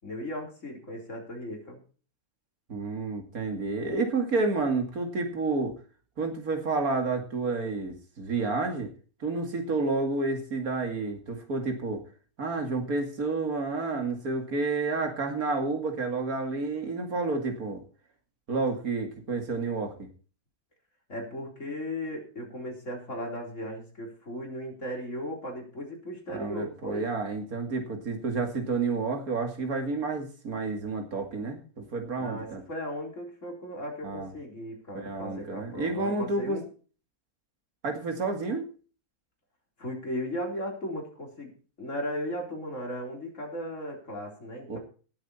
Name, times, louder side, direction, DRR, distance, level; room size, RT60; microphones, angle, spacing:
voice 1, 0.0-1.8 21.1-27.0 32.2-36.6 39.8-41.5 41.8-44.8, equal, 55° left, 1 dB, 4.3 m, -36 dB
voice 2, 2.7-5.8 6.2-8.9 9.2-12.0 12.4-17.8 18.5-20.1 26.3-32.6 34.0-34.3 34.9-36.6 37.8-38.7 44.7-44.8, right 3 dB, 75° right, 4 dB, 2.8 m, -30 dB
18.0 x 8.1 x 4.3 m, 0.38 s
omnidirectional pair, 1.6 m